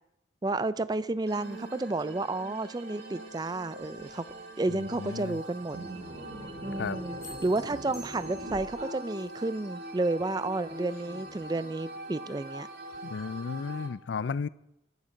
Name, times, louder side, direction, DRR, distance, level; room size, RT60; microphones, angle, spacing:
voice 1, 0.4-4.2 4.6-5.8 6.6-12.7, right 2 dB, 20° right, 16 dB, 0.4 m, -31 dB
sound 1, 1.3-13.9, right 1 dB, 65° right, 1.7 m, -43 dB
sound 2, 3.5-3.6 3.8-4.3 4.9-5.3 5.6-9.4 10.5-11.6, right 2 dB, 50° right, 2.9 m, -44 dB
voice 2, 5.0-5.4 6.8-7.0 13.0-14.5, left 5 dB, 75° left, 18 dB, 0.4 m, -33 dB
sound 3, 7.2-8.9, equal, 15° left, 1.5 m, -49 dB
11.5 x 11.5 x 5.2 m, 0.85 s
head